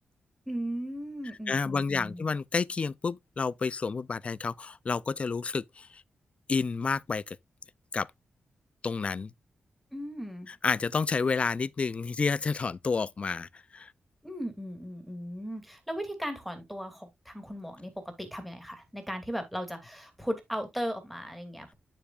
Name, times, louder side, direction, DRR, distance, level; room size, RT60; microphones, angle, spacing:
voice 1, 0.5-2.3 9.9-10.5 14.2-21.7, equal, ahead, 2.4 m, -37 dB
voice 2, 1.5-5.9 6.5-7.4 7.9-8.1 8.8-9.3 10.6-13.9, left 4 dB, 35° left, 0.4 m, -30 dB
9.1 x 6.9 x 2.4 m
wide cardioid pair, 110°, 3 cm